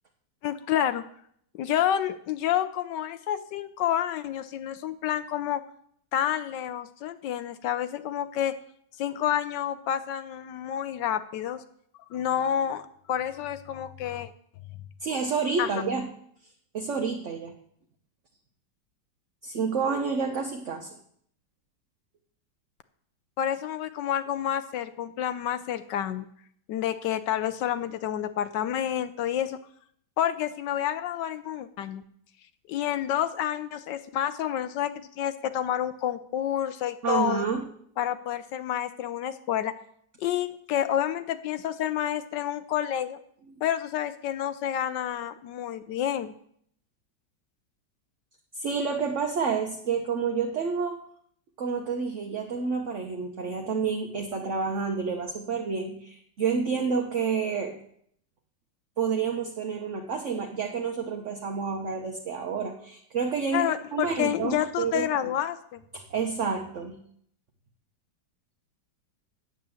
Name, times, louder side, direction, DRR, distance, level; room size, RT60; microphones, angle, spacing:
voice 1, 0.4-1.0 1.5-5.6 6.1-8.5 9.0-11.6 12.1-14.3 15.6-15.7 23.4-26.3 26.7-29.6 30.2-32.0 32.7-37.4 38.0-39.7 40.2-43.2 43.6-46.3 63.5-65.8, left 10 dB, 75° left, 11 dB, 1.2 m, -29 dB
voice 2, 15.0-16.1 16.7-17.5 19.4-20.9 37.0-37.6 48.5-51.0 51.6-57.8 59.0-65.1 65.9-67.0, right 5 dB, 50° right, 3 dB, 1.1 m, -29 dB
8.8 x 8.1 x 7.0 m, 0.67 s
omnidirectional pair, 1.9 m